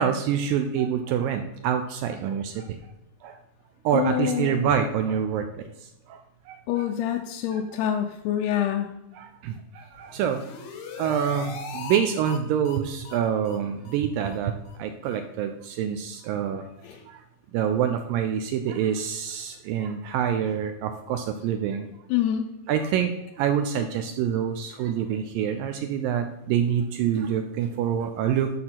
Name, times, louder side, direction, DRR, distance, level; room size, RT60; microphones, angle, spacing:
voice 1, 0.0-2.8 3.2-3.4 3.8-5.5 6.1-6.2 6.5-6.8 7.5-7.6 9.2-10.4 11.0-16.7 17.1-17.2 17.5-21.9 22.7-28.5, right 8 dB, 85° right, 6 dB, 2.0 m, -26 dB
voice 2, 3.9-4.7 6.7-9.0 16.8-17.0 22.1-22.5, left 10 dB, 90° left, 3 dB, 2.7 m, -26 dB
sound 1, 10.0-12.0 12.2-12.4 12.6-12.8 13.0-13.2 13.4-13.6 13.8-14.0 14.3-14.4 14.7-14.8 15.1-15.2, left 6 dB, 70° left, 1.7 m, -39 dB
11.0 x 3.8 x 5.8 m, 0.91 s
omnidirectional pair, 4.6 m